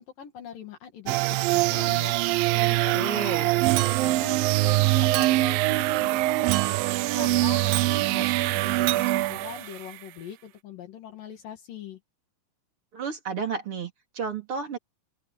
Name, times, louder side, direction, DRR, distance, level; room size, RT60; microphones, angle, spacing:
voice 1, 0.0-2.2 2.5-6.7 7.0-12.0, left 9 dB, 75° left, 3.7 m, -42 dB
sound 1, 1.1-9.9, right 18 dB, 85° right, 2.4 m, -23 dB
voice 2, 2.9-3.5 12.9-14.8, right 5 dB, 40° right, 3.7 m, -32 dB
Chink clink, 3.8-4.3 5.1-5.6 6.5-7.0 7.7-8.0 8.9-9.1, right 13 dB, 70° right, 1.9 m, -31 dB
open air
omnidirectional pair, 4.0 m